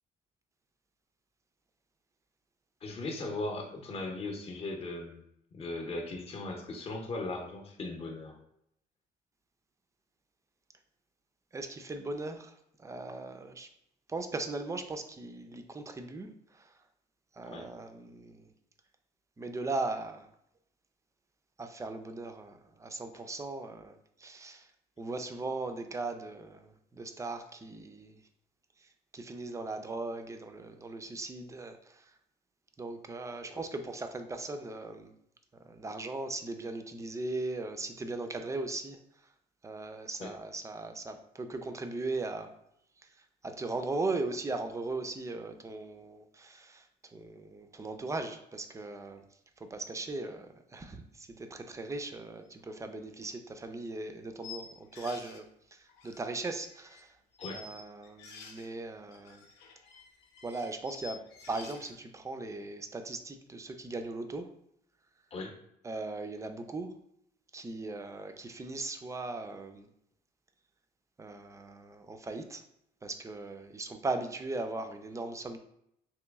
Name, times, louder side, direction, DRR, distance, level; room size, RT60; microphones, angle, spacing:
voice 1, 2.8-5.2 5.5-8.4 17.5-17.7 40.2-40.3 57.4-57.6 65.3-65.5, left 2 dB, 35° left, 2 dB, 0.7 m, -38 dB
voice 2, 11.5-13.7 14.1-16.7 17.4-18.5 19.4-20.3 21.6-24.7 25.0-28.2 28.8-32.1 32.8-35.1 35.6-39.0 39.6-42.5 43.0-43.1 43.4-46.9 47.1-49.2 49.6-55.5 55.7-57.2 57.5-59.4 60.4-64.5 65.8-67.0 67.5-69.9 71.2-72.6 73.0-75.6, right 2 dB, 20° right, 7 dB, 0.4 m, -38 dB
sound 1, 52.7-52.8 53.2-53.3 54.4-55.4 55.9-57.0 57.3-58.7 59.1-61.9, left 5 dB, 85° left, 0.7 m, -49 dB
3.0 x 3.0 x 3.4 m, 0.75 s
cardioid pair, 110°, 17 cm